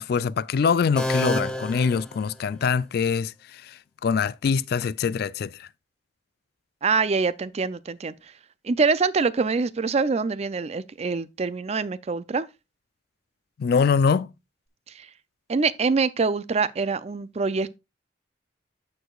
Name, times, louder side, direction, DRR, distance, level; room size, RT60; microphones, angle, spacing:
voice 1, 0.0-5.7 13.6-14.3, left 6 dB, 55° left, 0.3 m, -24 dB
sound 1, 1.0-2.9, left 1 dB, 5° left, 0.8 m, -29 dB
voice 2, 6.8-8.1 8.6-12.5 14.9-15.1 15.5-17.8, right 4 dB, 35° right, 0.4 m, -25 dB
14.0 x 4.8 x 2.3 m
head